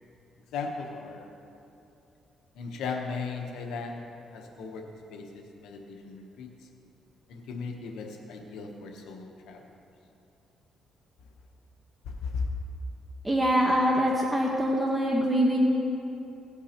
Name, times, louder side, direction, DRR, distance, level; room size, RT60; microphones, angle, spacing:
voice 1, 0.5-1.2 2.6-4.0 4.3-6.5 7.3-9.6 12.0-12.5, left 4 dB, 85° left, 2 dB, 0.9 m, -37 dB
voice 2, 13.2-15.6, equal, 10° right, -2 dB, 1.1 m, -24 dB
17.5 x 8.2 x 2.9 m, 2.8 s
cardioid pair, 90°, 0 cm